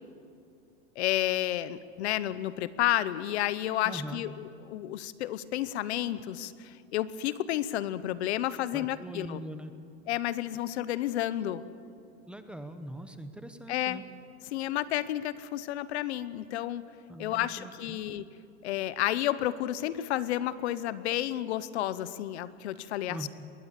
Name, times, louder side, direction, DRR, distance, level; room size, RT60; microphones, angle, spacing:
voice 1, 1.0-9.4 10.1-11.6 13.7-14.0 14.5-16.8 17.2-18.3 18.6-23.3, left 13 dB, 70° left, 16 dB, 1.0 m, -31 dB
voice 2, 3.8-4.2 8.7-9.7 12.3-14.0 17.1-18.0 23.1-23.3, right 1 dB, 5° right, 8 dB, 0.8 m, -41 dB
21.5 x 17.5 x 8.3 m, 2.4 s
supercardioid pair, 145°, 34 cm